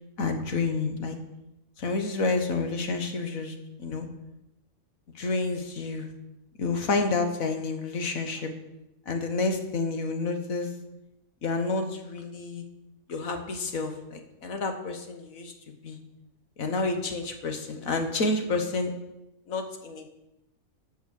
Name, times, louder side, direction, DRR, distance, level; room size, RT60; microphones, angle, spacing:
voice 1, 0.2-1.2 1.8-4.1 5.1-6.1 6.6-8.5 9.1-10.7 11.4-12.6 13.1-15.5 15.8-16.0 16.6-18.9 19.5-20.1, left 3 dB, 75° left, 5 dB, 1.6 m, -29 dB
14.0 x 5.5 x 6.4 m, 0.92 s
omnidirectional pair, 1.5 m